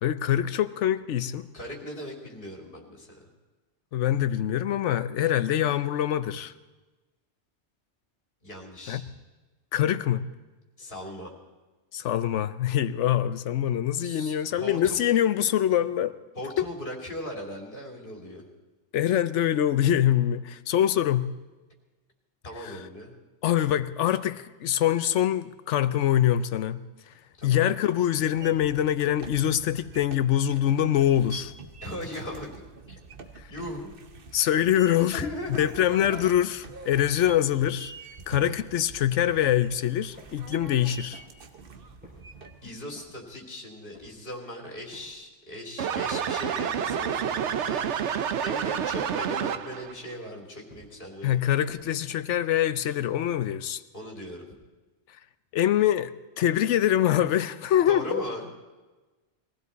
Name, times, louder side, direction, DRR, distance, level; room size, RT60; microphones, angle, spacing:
voice 1, 0.0-1.5 3.9-6.5 8.9-9.0 9.7-10.2 11.9-16.1 16.6-16.7 18.9-21.3 22.6-22.8 23.4-26.8 27.4-31.5 34.3-35.3 35.6-37.9 38.3-41.2 51.2-53.8 55.5-58.2, left 11 dB, 85° left, 1.0 m, -24 dB
voice 2, 1.5-3.2 8.4-9.1 10.8-11.3 14.0-15.0 16.4-18.5 22.4-23.1 27.4-27.6 31.8-32.6 33.5-33.9 35.1-35.6 42.6-47.9 48.4-51.4 53.9-54.5 57.9-58.5, equal, 50° left, 2.9 m, -38 dB
sound 1, 28.3-42.7, right 4 dB, 55° right, 1.2 m, -46 dB
sound 2, 33.7-34.1 34.6-35.0 35.5-35.9 36.5-36.9 37.4-37.8 38.4-38.7 39.3-39.6 40.2-40.6 41.1-41.5 42.0-42.4 42.9-43.4 43.9-44.4 44.9-45.3 45.9-46.3 46.9-47.2 47.7-48.2 48.7-49.1 49.7-50.1 50.7-51.1 51.7-52.1, left 1 dB, 10° right, 5.4 m, -54 dB
sound 3, 45.8-49.9, right 8 dB, 80° right, 1.0 m, -28 dB
21.5 x 16.0 x 4.1 m
omnidirectional pair, 1.2 m